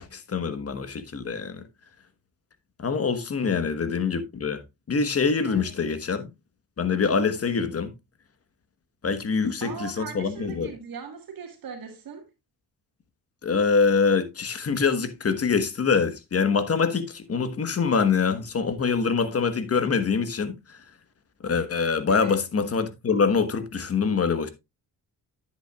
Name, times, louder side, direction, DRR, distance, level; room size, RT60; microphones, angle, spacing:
voice 1, 0.0-1.6 2.8-4.6 4.9-6.3 6.8-7.9 9.0-10.7 13.4-20.8 21.4-24.5, left 5 dB, 35° left, 1.2 m, -25 dB
voice 2, 5.5-5.9 9.6-12.3 22.1-22.4, right 6 dB, 60° right, 1.7 m, -39 dB
9.8 x 8.4 x 2.3 m
cardioid pair, 95°, 39 cm